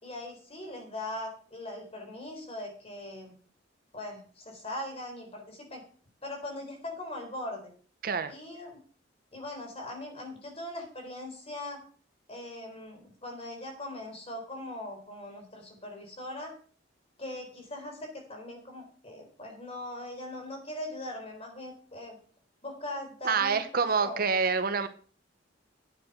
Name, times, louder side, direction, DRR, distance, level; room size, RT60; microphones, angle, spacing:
voice 1, 0.0-3.3 3.9-5.8 6.2-7.7 8.3-8.8 9.3-11.8 12.3-16.5 17.2-22.2 22.6-24.3, left 1 dB, 30° left, 3 dB, 4.1 m, -40 dB
voice 2, 23.2-24.9, right 5 dB, 50° right, 10 dB, 0.9 m, -27 dB
9.2 x 9.0 x 6.0 m, 0.43 s
head